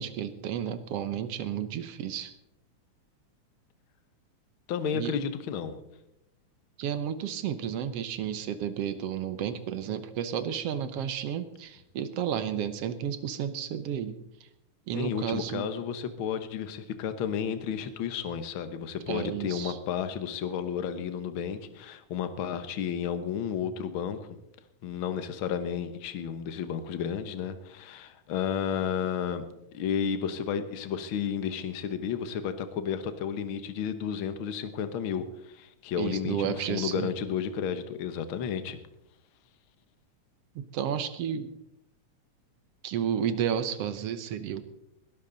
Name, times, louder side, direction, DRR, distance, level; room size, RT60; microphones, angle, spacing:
voice 1, 0.0-2.3 4.9-5.2 6.8-14.2 14.9-15.7 19.1-19.8 36.0-37.1 40.5-41.5 42.8-44.6, right 9 dB, 70° right, 12 dB, 1.6 m, -32 dB
voice 2, 4.7-5.8 14.9-24.3 24.8-29.4 29.7-38.8, left 7 dB, 60° left, 10 dB, 1.5 m, -32 dB
20.5 x 13.0 x 4.0 m, 0.85 s
omnidirectional pair, 3.5 m